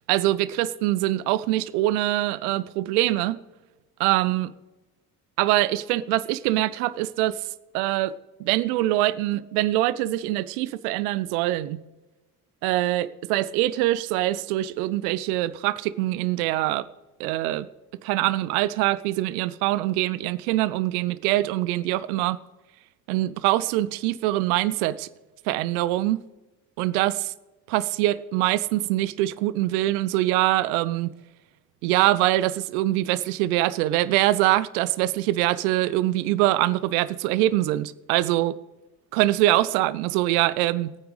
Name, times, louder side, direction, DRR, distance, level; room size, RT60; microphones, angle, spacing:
voice 1, 0.1-3.4 4.0-4.5 5.4-7.4 7.7-8.1 8.4-11.8 12.6-16.8 17.2-17.7 18.0-22.4 23.1-25.1 25.5-26.2 26.8-27.3 27.7-31.1 31.8-38.6 39.1-41.0, right 16 dB, 65° right, 0.7 m, -24 dB
20.0 x 9.3 x 3.3 m
figure-of-eight pair, 45°, 47 cm